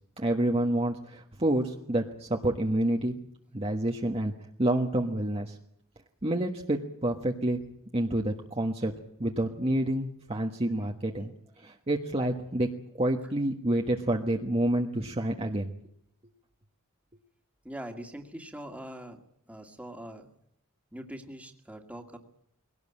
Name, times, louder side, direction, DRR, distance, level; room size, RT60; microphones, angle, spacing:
voice 1, 0.2-3.1 3.5-4.3 4.6-5.6 6.2-7.6 7.9-8.9 9.2-11.3 11.6-12.7 13.0-15.7, right 1 dB, 25° right, 1 dB, 1.3 m, -28 dB
voice 2, 17.6-19.2 19.5-20.3 20.9-22.2, right 1 dB, 5° right, 4 dB, 2.1 m, -42 dB
22.0 x 18.0 x 8.6 m, 0.73 s
head